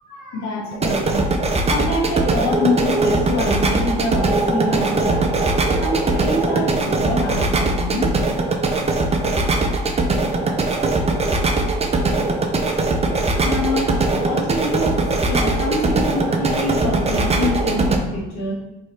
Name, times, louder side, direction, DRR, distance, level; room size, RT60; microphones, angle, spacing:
voice 1, 0.1-1.3 1.7-5.5 5.8-8.1 13.2-18.5, left 2 dB, 55° left, -4 dB, 1.3 m, -25 dB
sound 1, 0.7-18.0, right 2 dB, 20° right, 0.4 m, -20 dB
3.1 x 2.7 x 3.0 m, 0.98 s
hypercardioid pair, 55°, 32 cm